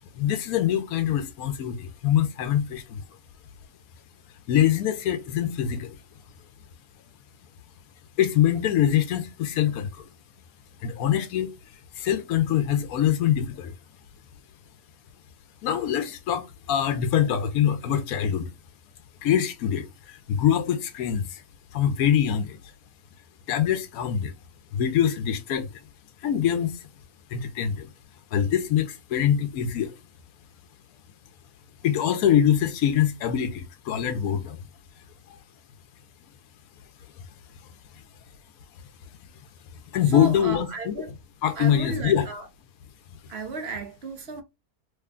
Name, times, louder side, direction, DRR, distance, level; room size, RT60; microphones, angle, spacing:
voice 1, 0.1-3.0 4.5-6.0 8.2-10.1 10.8-11.5 12.0-13.7 15.6-18.5 19.2-21.4 21.7-22.6 23.5-24.3 24.7-25.7 26.2-26.8 27.3-27.9 28.3-29.9 31.8-34.6 39.9-40.9 41.4-42.2, left 10 dB, 75° left, 1.1 m, -24 dB
voice 2, 40.0-41.1 41.5-42.5 43.3-44.4, right 3 dB, 50° right, 0.9 m, -34 dB
3.2 x 2.2 x 3.6 m
omnidirectional pair, 1.6 m